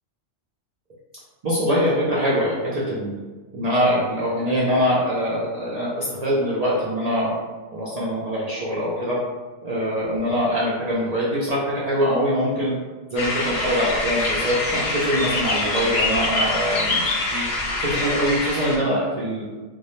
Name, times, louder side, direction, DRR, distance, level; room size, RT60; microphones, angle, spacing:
voice 1, 1.4-3.1 3.5-7.3 7.7-9.2 9.6-12.7 13.1-17.5 17.9-19.4, equal, 60° right, -7 dB, 0.4 m, -23 dB
sound 1, 13.2-18.8, left 2 dB, 70° left, 0.8 m, -25 dB
2.2 x 2.0 x 2.9 m, 1.3 s
omnidirectional pair, 1.2 m